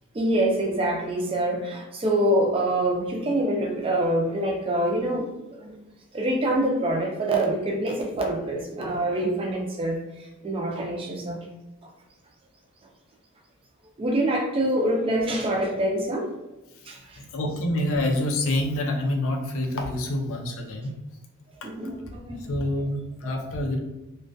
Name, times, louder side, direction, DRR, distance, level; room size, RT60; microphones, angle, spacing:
voice 1, 0.1-5.3 5.6-5.7 6.1-11.4 14.0-16.5 16.9-17.2 21.6-22.4, right 1 dB, 25° right, 1 dB, 0.4 m, -25 dB
voice 2, 16.8-21.0 21.6-21.7 22.5-23.8, left 1 dB, 60° left, 2 dB, 0.5 m, -27 dB
2.2 x 2.2 x 2.6 m, 1.0 s
head